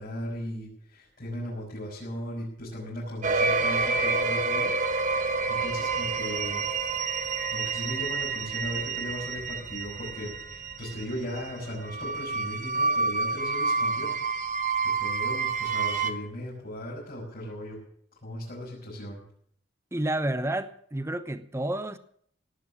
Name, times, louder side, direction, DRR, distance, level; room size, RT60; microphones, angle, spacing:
voice 1, 0.0-4.7 5.0-6.6 7.5-14.1 15.0-17.8 18.2-19.2, equal, 50° left, 6.0 m, -37 dB
sound 1, 3.2-16.1, right 4 dB, 40° right, 1.2 m, -28 dB
voice 2, 19.9-22.0, right 1 dB, 15° right, 0.8 m, -30 dB
18.0 x 9.3 x 7.4 m
head